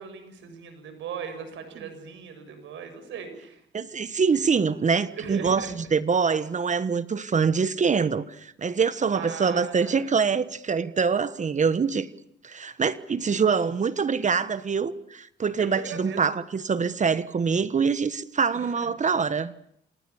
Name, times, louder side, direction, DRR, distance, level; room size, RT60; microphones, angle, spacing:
voice 1, 0.0-3.6 5.2-5.7 9.2-10.2 15.6-16.4 18.5-18.9, right 6 dB, 85° right, 6.9 m, -38 dB
voice 2, 3.7-12.1 12.4-19.5, right 5 dB, 40° right, 1.3 m, -24 dB
27.5 x 27.5 x 7.2 m
cardioid pair, 95°, 19 cm